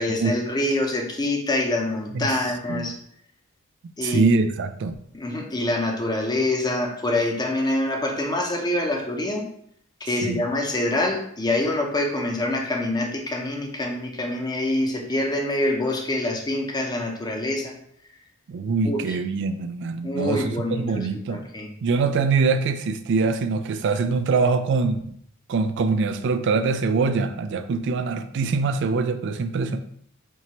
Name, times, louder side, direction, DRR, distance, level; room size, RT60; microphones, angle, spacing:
voice 1, 0.0-2.9 4.0-4.3 5.1-9.4 10.0-17.7 18.8-19.0 20.0-21.7, left 1 dB, 20° left, 2 dB, 0.6 m, -25 dB
voice 2, 2.1-2.9 4.0-5.0 10.2-10.4 18.5-21.4 21.8-25.0 25.5-29.8, right 4 dB, 55° right, 9 dB, 0.3 m, -24 dB
4.6 x 2.9 x 2.8 m, 0.67 s
head